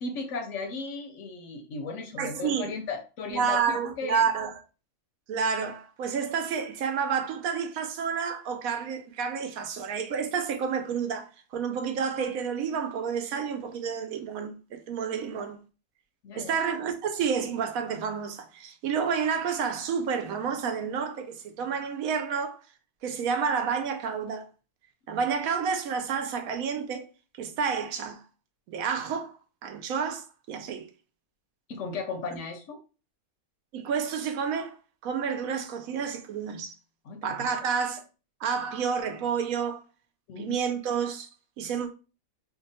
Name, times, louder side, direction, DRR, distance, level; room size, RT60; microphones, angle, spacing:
voice 1, 0.0-3.6 4.0-4.3 15.3-15.4 16.2-16.6 25.1-25.2 31.7-32.8 37.1-37.4 40.3-40.6, left 4 dB, 65° left, 0.8 m, -36 dB
voice 2, 2.2-2.7 3.3-4.6 5.3-15.6 16.3-22.6 23.0-24.5 25.1-27.1 27.4-28.2 28.7-29.3 29.6-30.9 33.7-34.8 35.0-36.7 37.2-38.0 38.4-39.8 40.4-41.3 41.6-41.9, right 6 dB, 75° right, 1.0 m, -30 dB
2.8 x 2.2 x 4.0 m
omnidirectional pair, 1.5 m